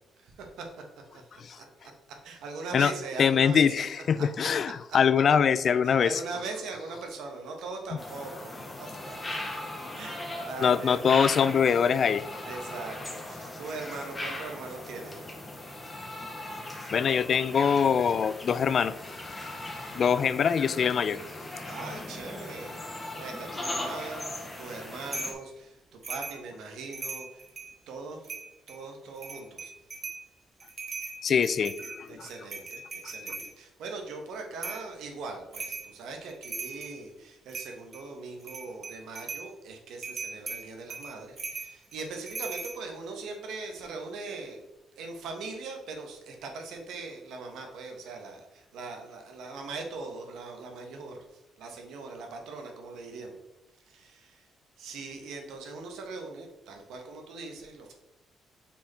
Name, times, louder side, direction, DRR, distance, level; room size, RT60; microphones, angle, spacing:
voice 1, 0.2-0.8 1.1-1.9 2.2-5.0 5.8-8.5 8.8-8.9 9.9-11.0 12.4-15.2 21.6-27.4 27.9-28.3 28.7-29.7 32.1-44.7 45.0-51.2 51.6-53.4 53.9-54.5 54.8-57.9, right 3 dB, 80° right, 3 dB, 1.2 m, -41 dB
voice 2, 3.2-6.2 10.6-12.4 16.9-19.0 19.3-19.4 19.9-21.2 31.2-32.3, left 7 dB, 55° left, 15 dB, 0.3 m, -24 dB
sound 1, 8.0-25.3, left 1 dB, 20° left, 1.5 m, -39 dB
sound 2, 25.1-25.4 26.0-26.4 26.8-27.7 28.2-28.8 29.2-30.2 30.6-33.5 34.6-34.9 35.5-35.9 36.3-37.0 37.5-38.0 38.4-39.5 40.0-42.8, right 4 dB, 45° right, 1.4 m, -39 dB
5.9 x 4.3 x 4.2 m, 0.97 s
cardioid pair, 90°, 0 cm